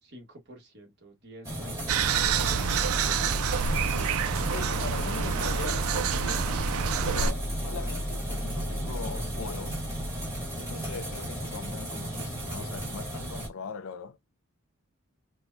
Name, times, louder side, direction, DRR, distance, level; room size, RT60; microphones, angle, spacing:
voice 1, 0.0-2.8, right 1 dB, 50° right, 1.4 m, -50 dB
sound 1, 1.4-13.5, right 1 dB, 10° right, 1.4 m, -36 dB
sound 2, 1.8-13.7, equal, 10° left, 0.8 m, -36 dB
sound 3, 1.9-7.3, right 7 dB, 75° right, 0.4 m, -28 dB
voice 2, 3.9-6.6 7.0-9.8 10.5-14.2, left 5 dB, 65° left, 0.4 m, -41 dB
4.5 x 2.2 x 2.6 m
head